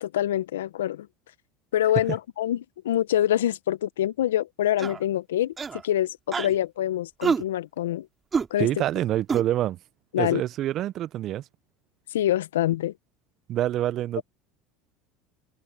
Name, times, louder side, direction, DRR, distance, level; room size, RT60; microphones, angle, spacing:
voice 1, 0.0-1.1 1.7-2.6 2.8-5.5 5.8-8.1 8.5-8.7 10.1-10.4 12.1-12.9 14.2-14.3, left 12 dB, 80° left, 1.4 m, -25 dB
sound 1, 4.8-5.0 5.6-5.8 6.3-6.6 7.2-7.4 8.3-8.5 9.3-9.4, right 5 dB, 25° right, 3.5 m, -26 dB
voice 2, 8.6-9.8 10.2-11.5 13.5-14.2, right 13 dB, 50° right, 1.2 m, -26 dB
hypercardioid pair, 75°, 0 cm